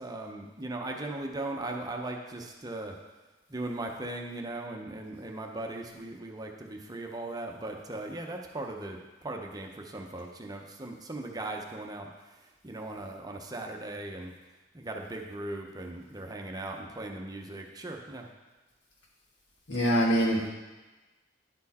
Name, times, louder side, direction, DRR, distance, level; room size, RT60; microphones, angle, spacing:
voice 1, 0.0-3.0 3.5-14.3 14.7-18.3, right 2 dB, 20° right, 2 dB, 0.7 m, -38 dB
voice 2, 19.7-20.5, equal, 85° left, -3 dB, 1.7 m, -24 dB
10.5 x 4.4 x 4.2 m, 1.2 s
head